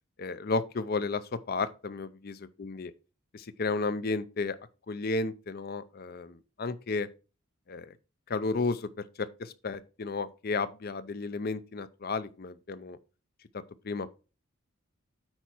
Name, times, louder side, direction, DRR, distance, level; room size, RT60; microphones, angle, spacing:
voice 1, 0.2-2.9 3.3-4.6 4.9-7.1 7.7-7.9 8.3-8.9 9.2-13.0 13.8-14.1, left 3 dB, 50° left, 0.5 m, -33 dB
8.8 x 4.6 x 4.4 m
head